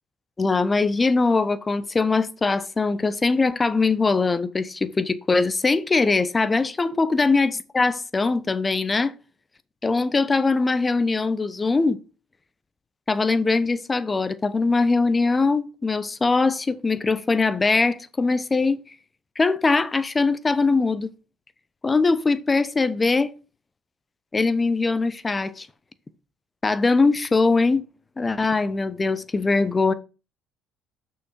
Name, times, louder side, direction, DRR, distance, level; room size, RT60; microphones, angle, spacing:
voice 1, 0.4-9.1 9.8-12.0 13.1-18.8 19.4-21.1 21.8-23.3 24.3-25.7 26.6-27.8 28.2-29.9, left 3 dB, 25° left, 0.8 m, -21 dB
6.3 x 5.7 x 4.4 m
figure-of-eight pair, 50°, 0 cm